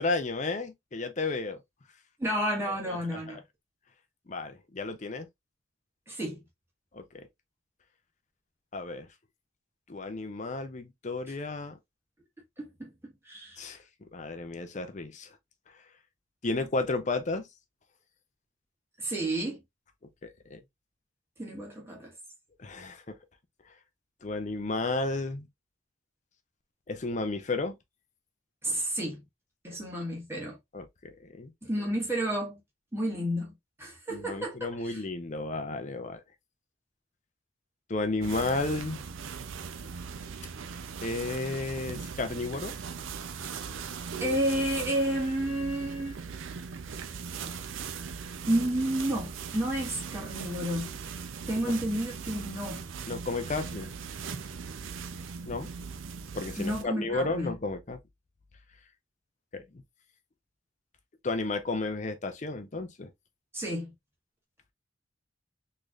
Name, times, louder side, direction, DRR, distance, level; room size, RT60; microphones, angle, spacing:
voice 1, 0.0-1.6 2.7-3.4 4.3-5.3 6.9-7.3 8.7-9.1 9.9-11.8 13.6-13.8 14.1-15.3 16.4-17.5 20.2-20.6 22.6-23.2 24.2-25.5 26.9-27.7 30.7-30.9 31.2-31.5 34.1-36.2 37.9-39.0 41.0-42.7 53.1-53.9 55.4-55.7 56.3-58.0 59.5-59.6 61.2-63.1, left 3 dB, 35° left, 0.6 m, -33 dB
voice 2, 2.2-3.4 6.1-6.4 12.6-13.7 19.0-19.6 21.4-22.1 28.6-29.2 29.6-30.6 31.6-32.6 32.9-33.5 33.8-35.0 44.2-46.2 47.5-47.6 48.5-50.9 51.5-52.8 56.6-57.5 63.5-63.9, right 1 dB, 10° right, 1.5 m, -31 dB
sound 1, 38.2-56.8, right 6 dB, 75° right, 0.5 m, -39 dB
3.9 x 3.2 x 2.4 m
head